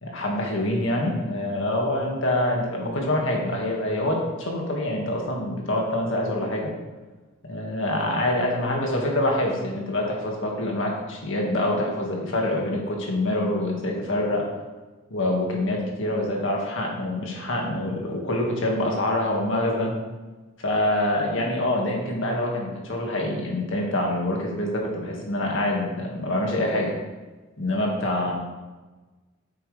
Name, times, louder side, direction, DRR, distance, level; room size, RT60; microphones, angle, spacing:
voice 1, 0.0-6.7 7.5-14.5 15.1-19.9 20.6-26.9 27.6-28.3, left 1 dB, 65° left, -1 dB, 2.1 m, -25 dB
8.9 x 8.1 x 3.4 m, 1.2 s
head